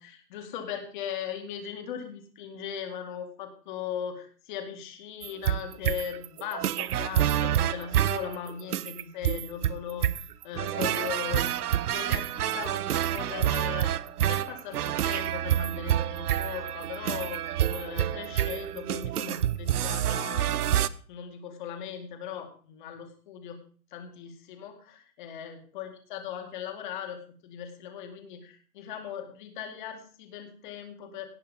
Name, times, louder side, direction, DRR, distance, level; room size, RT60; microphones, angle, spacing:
voice 1, 0.0-20.7 21.1-23.6 23.9-31.3, left 8 dB, 30° left, 5 dB, 2.1 m, -39 dB
sound 1, 5.2-20.9, right 11 dB, 65° right, 0.7 m, -28 dB
17.5 x 6.1 x 5.3 m, 0.44 s
hypercardioid pair, 165°, 50 cm